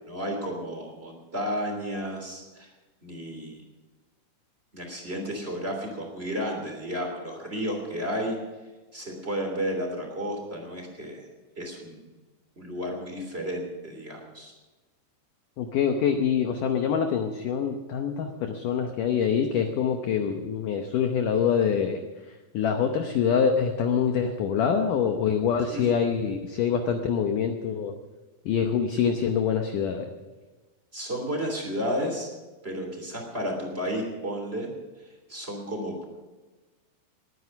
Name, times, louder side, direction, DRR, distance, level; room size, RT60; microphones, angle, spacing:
voice 1, 0.1-2.7 3.0-3.6 4.7-8.4 8.9-11.3 11.6-12.0 12.6-14.5 25.7-25.8 30.9-32.3 32.6-34.7 35.3-36.1, equal, 15° right, 1 dB, 2.6 m, -32 dB
voice 2, 15.6-22.0 22.3-27.9 28.5-30.1, left 7 dB, 85° left, 6 dB, 1.8 m, -25 dB
20.5 x 9.7 x 6.0 m, 1.2 s
omnidirectional pair, 5.1 m